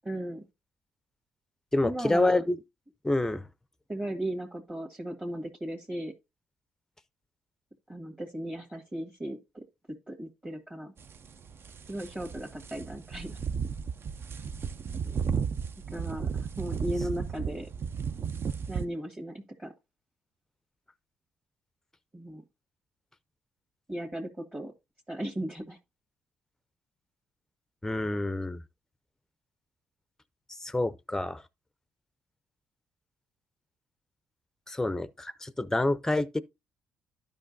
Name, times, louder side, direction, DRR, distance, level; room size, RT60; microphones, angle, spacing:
voice 1, 0.1-0.4 1.8-2.4 3.9-6.1 7.9-9.6 10.1-10.9 11.9-13.4 15.9-17.7 18.7-19.7 22.1-22.4 23.9-24.7 25.1-25.8, right 1 dB, 20° right, 1.8 m, -36 dB
voice 2, 1.7-2.6 3.0-3.5 15.1-15.2 27.8-28.6 30.5-31.4 34.7-36.4, left 2 dB, 10° left, 0.5 m, -28 dB
sound 1, 11.0-18.8, right 6 dB, 50° right, 0.6 m, -34 dB
12.0 x 5.2 x 2.6 m
hypercardioid pair, 55°, 5 cm